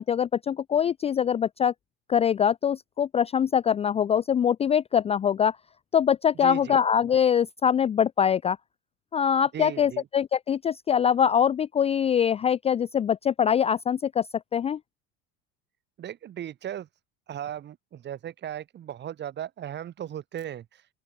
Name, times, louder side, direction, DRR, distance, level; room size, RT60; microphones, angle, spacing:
voice 1, 0.0-1.7 2.1-5.6 5.9-8.6 9.1-14.3 14.5-14.8, left 8 dB, 20° left, 0.5 m, -23 dB
voice 2, 6.4-6.8 9.5-10.1 16.0-16.9 17.3-20.8, right 10 dB, 35° right, 2.9 m, -37 dB
open air
cardioid pair, 145°, 31 cm